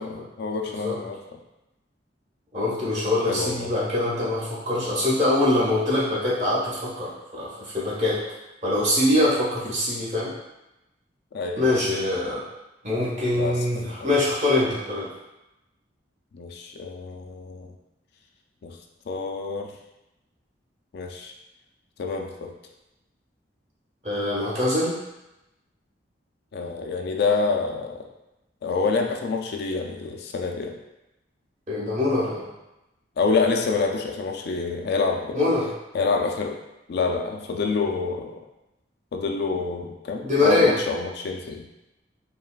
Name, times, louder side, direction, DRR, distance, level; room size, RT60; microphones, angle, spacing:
voice 1, 0.0-1.4 3.3-3.7 11.3-11.7 13.3-14.1 16.3-17.7 18.6-18.8 19.1-19.7 20.9-21.3 22.0-22.5 26.5-28.0 28.6-30.8 33.2-35.4 35.9-36.6 36.9-38.4 39.1-41.7, left 4 dB, 60° left, 3 dB, 0.4 m, -27 dB
voice 2, 2.5-8.2 8.6-10.3 11.6-12.4 12.8-15.1 24.0-25.0 31.7-32.5 35.3-35.7 40.2-40.7, left 2 dB, 40° right, -7 dB, 1.3 m, -23 dB
5.2 x 2.3 x 2.4 m, 0.95 s
head